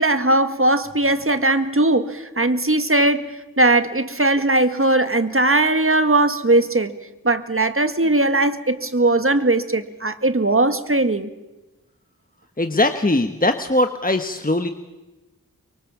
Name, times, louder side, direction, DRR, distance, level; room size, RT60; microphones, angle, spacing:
voice 1, 0.0-6.9 7.2-11.3, right 2 dB, 40° right, 1.7 m, -19 dB
voice 2, 12.6-14.7, left 1 dB, 25° left, 1.3 m, -20 dB
24.0 x 23.0 x 7.3 m
wide cardioid pair, 45°, 34 cm